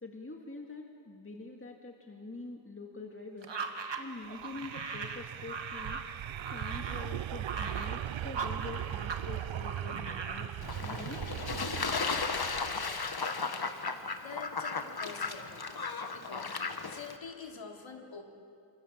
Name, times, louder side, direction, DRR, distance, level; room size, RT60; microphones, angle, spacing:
voice 1, 0.0-3.5 4.0-6.0 6.5-11.2, left 3 dB, 30° left, 1 dB, 2.2 m, -45 dB
sound 1, 3.4-9.2 9.5-10.5, right 5 dB, 65° right, 2.0 m, -39 dB
sound 2, 4.0-13.2, right 12 dB, 85° right, 0.6 m, -39 dB
Fowl / Bird / Water, 10.6-17.2, left 4 dB, 55° left, 1.6 m, -35 dB
voice 2, 14.2-15.7 16.1-16.6 16.8-18.2, left 5 dB, 80° left, 1 dB, 3.4 m, -45 dB
28.5 x 25.5 x 7.5 m, 2.4 s
wide cardioid pair, 100°, 46 cm